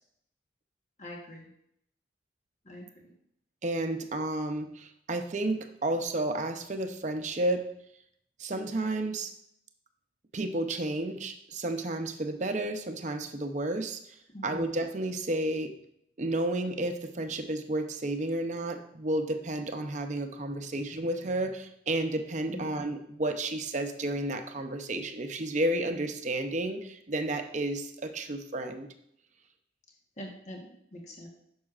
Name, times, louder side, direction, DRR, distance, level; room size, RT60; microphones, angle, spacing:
voice 1, 1.0-1.5 2.6-3.1 14.3-14.7 22.5-22.8 30.2-31.3, left 1 dB, 40° left, -1 dB, 1.2 m, -43 dB
voice 2, 3.6-7.6 8.4-9.3 10.3-14.0 14.4-15.7 16.2-28.9, right 1 dB, 40° right, 6 dB, 0.6 m, -31 dB
9.4 x 6.3 x 2.4 m, 0.72 s
head